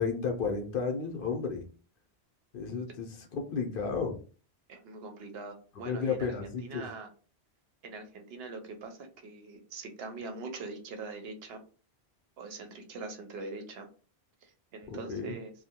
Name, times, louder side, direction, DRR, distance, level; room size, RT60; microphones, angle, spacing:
voice 1, 0.0-1.7 2.5-4.2 5.8-6.8 14.9-15.3, left 5 dB, 60° left, 3 dB, 0.7 m, -32 dB
voice 2, 4.7-7.1 7.8-11.6 12.4-13.9 14.4-15.5, right 3 dB, 70° right, 5 dB, 0.8 m, -43 dB
2.6 x 2.1 x 2.7 m, 0.38 s
omnidirectional pair, 1.1 m